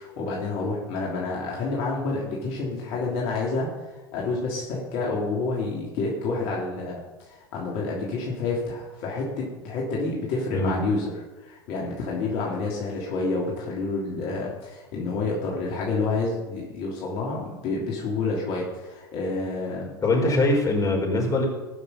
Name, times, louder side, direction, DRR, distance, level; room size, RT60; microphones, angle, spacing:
voice 1, 0.0-20.3, left 3 dB, 55° left, -3 dB, 3.1 m, -29 dB
voice 2, 20.0-21.4, left 2 dB, 25° left, 0 dB, 5.0 m, -22 dB
19.5 x 6.6 x 5.8 m, 1.2 s
hypercardioid pair, 80°, 13 cm